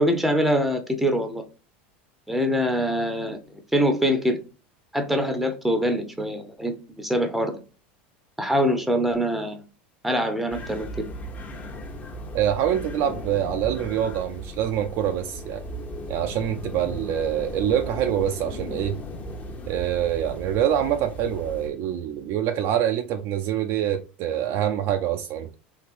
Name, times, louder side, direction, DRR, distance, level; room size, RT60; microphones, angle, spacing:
voice 1, 0.0-1.4 2.3-3.4 3.7-4.4 4.9-7.6 8.4-9.6 10.0-10.9, equal, ahead, 0.7 m, -24 dB
sound 1, 10.5-21.7, equal, 25° left, 0.8 m, -36 dB
voice 2, 12.3-15.6 16.1-19.0 19.7-25.5, right 10 dB, 55° right, 0.4 m, -25 dB
3.3 x 2.8 x 2.5 m
supercardioid pair, 105°, 6 cm